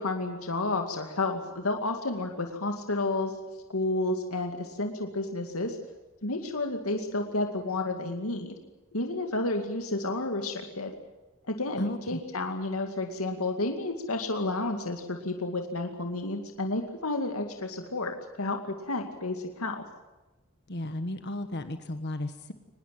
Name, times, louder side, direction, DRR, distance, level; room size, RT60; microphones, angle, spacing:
voice 1, 0.0-3.4 3.7-5.8 6.2-8.5 8.9-10.9 11.4-19.8, left 2 dB, 85° left, 4 dB, 2.4 m, -31 dB
voice 2, 11.8-12.2 20.7-22.5, left 1 dB, 50° left, 9 dB, 1.4 m, -34 dB
24.5 x 20.5 x 7.7 m, 1.1 s
head